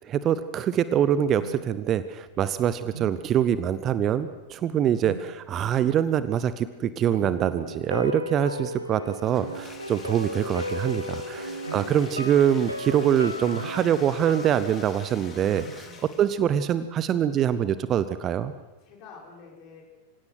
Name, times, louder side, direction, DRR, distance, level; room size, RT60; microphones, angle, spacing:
voice 1, 0.1-15.8 16.2-18.5, right 9 dB, 30° right, 14 dB, 0.8 m, -24 dB
sound 1, 1.4-17.1, right 5 dB, 70° right, 1.6 m, -46 dB
sound 2, 7.1-16.1 16.4-16.5, left 1 dB, 90° left, 1.3 m, -36 dB
Bathtub (filling or washing), 9.2-16.5, left 5 dB, 25° left, 3.1 m, -47 dB
voice 2, 11.3-11.7 15.8-16.0 18.8-19.8, left 4 dB, 40° left, -1 dB, 6.1 m, -49 dB
25.5 x 17.0 x 6.1 m, 1.1 s
figure-of-eight pair, 90°, 0 cm